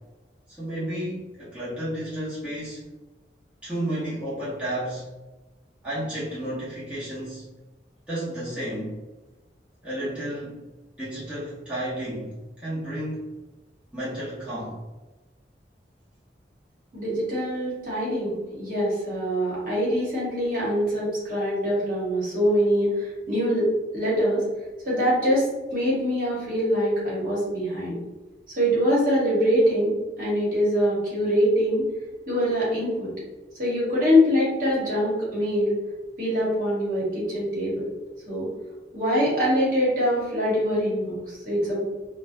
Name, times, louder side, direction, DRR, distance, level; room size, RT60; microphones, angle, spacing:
voice 1, 0.6-2.8 3.6-5.1 5.8-7.4 8.1-9.0 9.8-10.6 11.0-13.3 13.9-14.8, right 1 dB, 5° right, -11 dB, 0.7 m, -32 dB
voice 2, 16.9-23.7 23.9-24.4 24.8-28.0 28.5-31.9 32.2-33.1 33.6-35.7 36.2-37.9 38.3-38.5 38.9-41.8, equal, 45° right, -7 dB, 1.1 m, -24 dB
2.5 x 2.1 x 2.5 m, 1.1 s
head